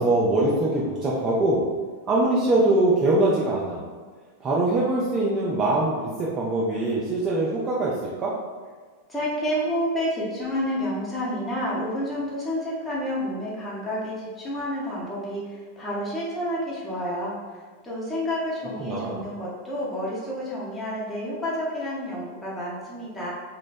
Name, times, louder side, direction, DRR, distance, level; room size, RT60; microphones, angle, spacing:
voice 1, 0.0-1.6 2.1-3.8 4.4-8.3 18.8-19.3, right 2 dB, 25° right, -5 dB, 0.4 m, -23 dB
voice 2, 9.1-17.4 17.8-23.3, equal, 10° left, -7 dB, 0.8 m, -29 dB
2.9 x 2.1 x 2.6 m, 1.5 s
figure-of-eight pair, 90°, 0 cm